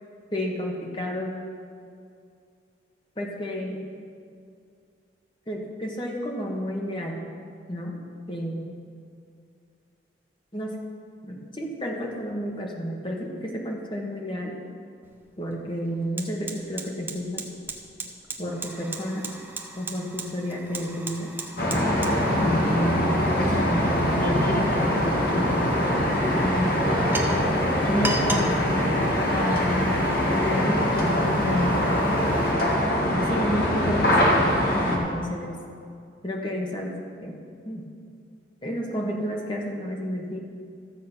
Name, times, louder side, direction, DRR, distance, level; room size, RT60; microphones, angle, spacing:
voice 1, 0.3-1.3 3.2-3.8 5.5-7.2 7.7-8.0 8.3-8.7 10.5-10.8 11.2-14.6 15.4-17.4 18.4-19.3 19.7-21.3 22.4-26.0 26.3-27.2 27.9-28.9 29.3-30.0 30.3-32.2 33.1-34.4 34.8-35.6 36.2-37.4 37.6-37.9 38.6-40.4, equal, 25° left, 0 dB, 1.4 m, -31 dB
Fire, 15.0-15.2 15.5-32.5, right 2 dB, 10° right, 0.7 m, -36 dB
sound 1, 21.6-35.0, left 1 dB, 50° left, 1.7 m, -23 dB
13.5 x 7.4 x 5.8 m, 2.3 s
head